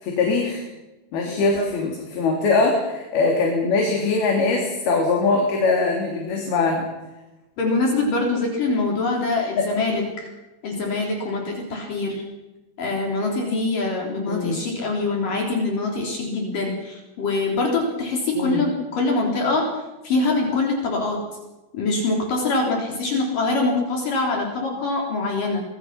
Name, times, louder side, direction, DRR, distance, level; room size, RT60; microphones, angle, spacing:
voice 1, 0.0-0.6 1.1-6.9 14.3-14.6 18.3-18.7, left 3 dB, 75° left, 0 dB, 5.2 m, -22 dB
voice 2, 1.3-1.7 7.6-10.3 10.6-12.2 12.8-19.7 20.0-21.2 21.7-25.6, left 3 dB, 60° left, 0 dB, 5.2 m, -24 dB
25.5 x 22.0 x 6.0 m, 1.0 s
omnidirectional pair, 4.5 m